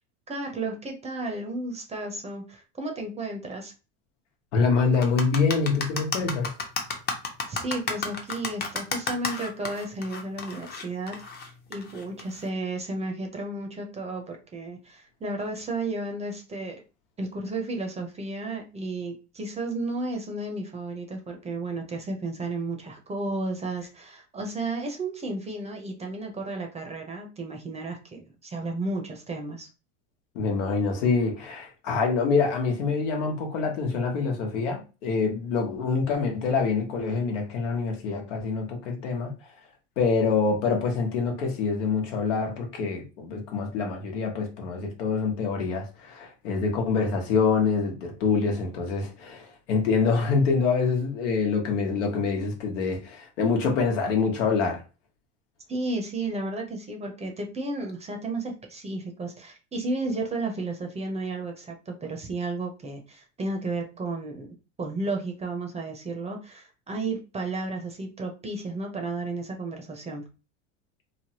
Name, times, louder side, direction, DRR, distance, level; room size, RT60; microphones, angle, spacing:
voice 1, 0.3-3.7 7.5-16.8 17.2-29.7 55.7-70.2, right 2 dB, 20° right, 0.6 m, -33 dB
voice 2, 4.5-6.5 30.3-39.3 40.0-54.8, left 4 dB, 80° left, 1.1 m, -25 dB
sound 1, 4.9-12.5, left 4 dB, 25° left, 0.7 m, -32 dB
3.3 x 2.1 x 2.8 m
hypercardioid pair, 105°, 36 cm